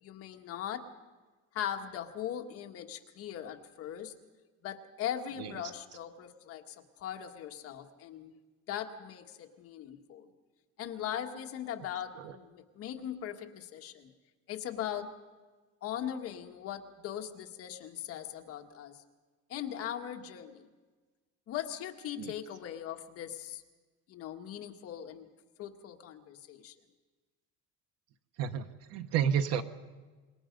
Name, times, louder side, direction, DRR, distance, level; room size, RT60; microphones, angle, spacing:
voice 1, 0.0-0.9 1.5-4.1 4.6-8.3 8.7-10.3 10.8-14.1 14.5-15.2 15.8-19.0 19.5-20.7 21.5-23.6 24.1-25.3 25.6-26.7, left 10 dB, 50° left, 4 dB, 1.5 m, -40 dB
voice 2, 28.4-29.6, right 8 dB, 55° right, 10 dB, 1.1 m, -31 dB
26.0 x 21.5 x 5.3 m, 1.3 s
cardioid pair, 175°, 30 cm